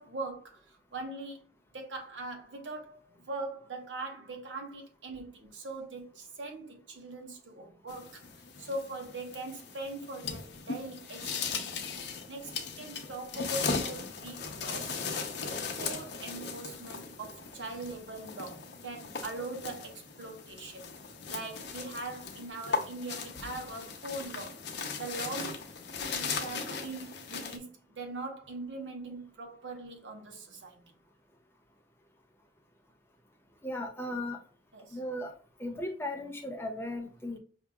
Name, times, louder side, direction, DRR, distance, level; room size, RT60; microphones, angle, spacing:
voice 1, 0.0-1.4 1.7-8.3 8.6-11.7 12.3-15.0 15.4-20.9 21.3-24.6 24.9-25.6 26.1-30.8 34.7-35.0, right 2 dB, 80° right, 1.0 m, -41 dB
sound 1, 7.9-27.6, left 5 dB, 60° left, 0.7 m, -38 dB
voice 2, 33.6-34.4 34.9-35.3 35.6-37.4, left 1 dB, 15° left, 0.5 m, -36 dB
5.8 x 2.8 x 2.3 m
head